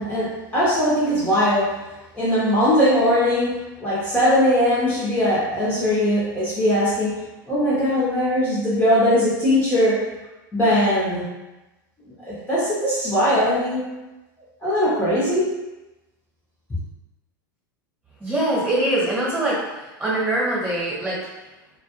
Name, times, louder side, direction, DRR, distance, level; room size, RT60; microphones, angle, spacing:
voice 1, 0.0-1.7 2.1-7.2 7.5-10.0 10.5-11.2 12.2-13.8 14.6-15.5, equal, 15° left, -10 dB, 0.8 m, -20 dB
voice 2, 18.2-21.2, right 1 dB, 15° right, -7 dB, 1.2 m, -23 dB
2.2 x 2.2 x 2.9 m, 1.1 s
hypercardioid pair, 115°, 11 cm